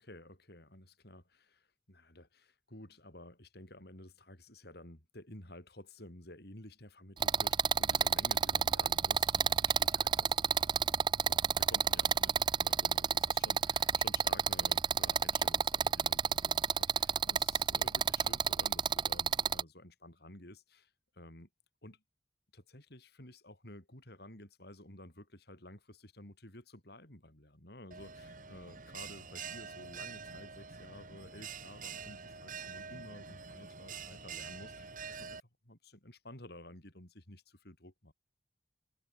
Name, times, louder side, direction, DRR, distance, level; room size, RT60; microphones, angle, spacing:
voice 1, 0.0-21.5 21.8-22.0 22.5-35.4 35.6-38.1, left 1 dB, 60° left, 6.1 m, -53 dB
sound 1, 7.2-19.6, right 7 dB, 25° right, 0.3 m, -30 dB
Bell, 27.9-35.4, right 6 dB, 45° right, 3.4 m, -46 dB
head